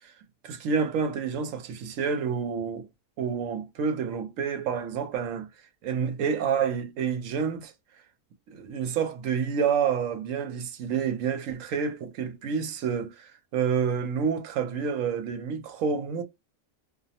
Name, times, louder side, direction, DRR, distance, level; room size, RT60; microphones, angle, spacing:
voice 1, 0.4-2.9 3.2-5.5 5.8-7.7 8.5-16.2, right 6 dB, 75° right, 0.9 m, -28 dB
2.4 x 2.0 x 2.7 m
omnidirectional pair, 1.4 m